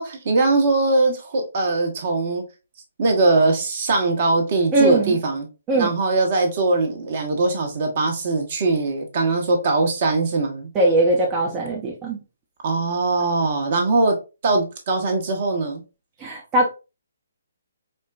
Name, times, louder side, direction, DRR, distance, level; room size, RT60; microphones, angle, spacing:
voice 1, 0.0-2.4 3.0-5.5 5.7-10.7 12.6-14.1 14.4-15.8, right 3 dB, 45° right, 1.0 m, -21 dB
voice 2, 4.7-5.2 5.7-5.9 10.7-12.2 16.2-16.7, right 1 dB, 20° right, 0.6 m, -20 dB
4.3 x 2.1 x 2.4 m
figure-of-eight pair, 140°, 0 cm